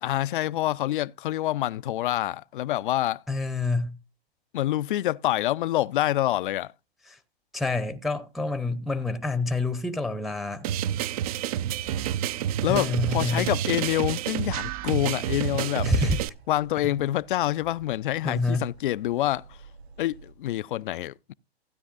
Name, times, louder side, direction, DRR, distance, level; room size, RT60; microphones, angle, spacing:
voice 1, 0.0-3.2 4.5-6.7 12.6-15.9 16.5-19.6 20.0-21.3, left 14 dB, 55° left, 0.4 m, -27 dB
voice 2, 3.3-4.0 7.1-7.2 7.5-10.7 12.7-13.5 15.8-16.2 18.2-18.7, left 3 dB, ahead, 0.7 m, -27 dB
sound 1, 10.6-16.3, right 10 dB, 35° right, 0.4 m, -29 dB
sound 2, 12.5-20.3, right 4 dB, 85° right, 1.4 m, -51 dB
15.5 x 9.5 x 2.5 m
hypercardioid pair, 120°, 32 cm